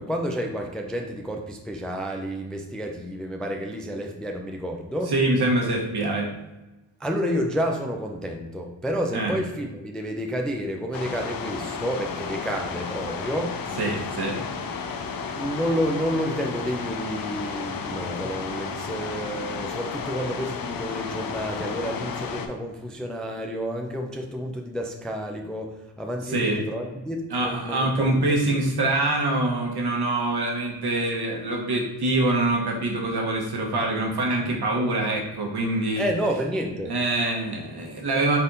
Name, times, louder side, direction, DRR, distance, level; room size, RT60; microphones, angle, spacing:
voice 1, 0.0-5.1 7.0-13.8 15.3-28.2 36.0-36.9, equal, ahead, 2 dB, 0.4 m, -30 dB
voice 2, 5.1-6.3 9.1-9.4 13.8-14.4 26.3-26.6 27.3-36.0 36.9-38.4, right 2 dB, 55° right, -1 dB, 1.2 m, -24 dB
sound 1, 10.9-22.5, left 5 dB, 45° left, 0.6 m, -33 dB
4.3 x 3.5 x 2.6 m, 1.1 s
supercardioid pair, 50°, 47 cm